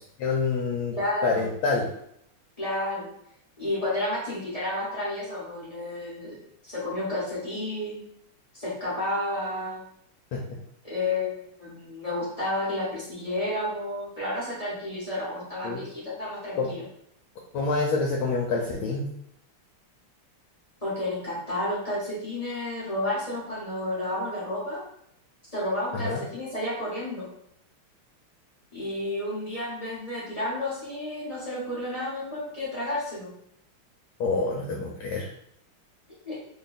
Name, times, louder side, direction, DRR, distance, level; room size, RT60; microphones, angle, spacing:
voice 1, 0.2-1.0 1.2-1.9 10.3-10.4 15.6-15.8 16.5-16.7 17.5-19.1 25.9-26.2 34.2-35.3, left 4 dB, 75° left, -1 dB, 1.2 m, -27 dB
voice 2, 0.9-1.5 2.6-3.1 3.6-6.4 6.6-8.0 8.5-9.8 10.8-16.8 20.8-24.8 25.5-27.3 28.7-33.3 36.2-36.4, left 1 dB, 30° left, -8 dB, 0.7 m, -31 dB
3.3 x 2.3 x 4.0 m, 0.74 s
omnidirectional pair, 2.4 m